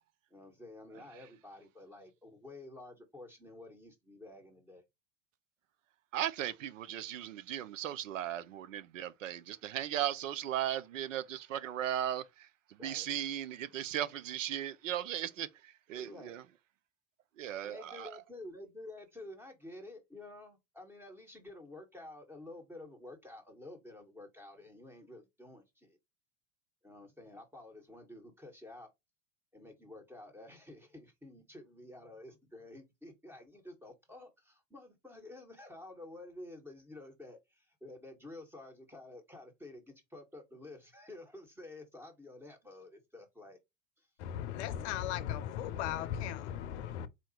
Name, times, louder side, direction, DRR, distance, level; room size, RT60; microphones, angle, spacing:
voice 1, 0.3-4.8 12.8-13.1 15.9-16.4 17.6-26.0 26.8-28.9 29.5-43.6 44.0-44.1, left 2 dB, 5° right, 1.6 m, -51 dB
voice 2, 6.1-12.5 12.8-16.4 17.4-18.1, right 11 dB, 80° right, 0.6 m, -37 dB
voice 3, 44.2-47.1, left 10 dB, 60° left, 0.7 m, -37 dB
4.2 x 2.8 x 2.9 m
hypercardioid pair, 90°, 38 cm